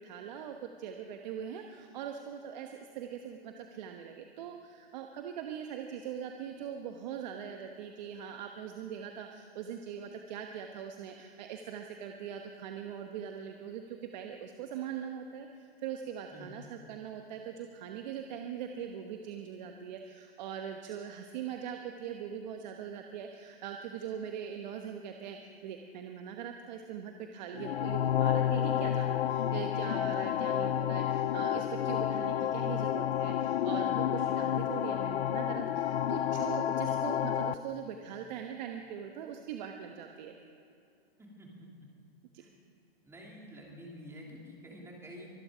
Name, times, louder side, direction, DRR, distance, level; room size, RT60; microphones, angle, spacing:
voice 1, 0.0-40.3 42.3-42.4, right 8 dB, 45° right, 4 dB, 1.1 m, -41 dB
sound 1, 27.5-37.5, left 10 dB, 85° left, 0.6 m, -30 dB
voice 2, 41.2-41.7 42.4-42.5 43.0-45.3, equal, 10° right, -2 dB, 3.0 m, -49 dB
24.0 x 9.8 x 5.1 m, 2.7 s
hypercardioid pair, 140°, 30 cm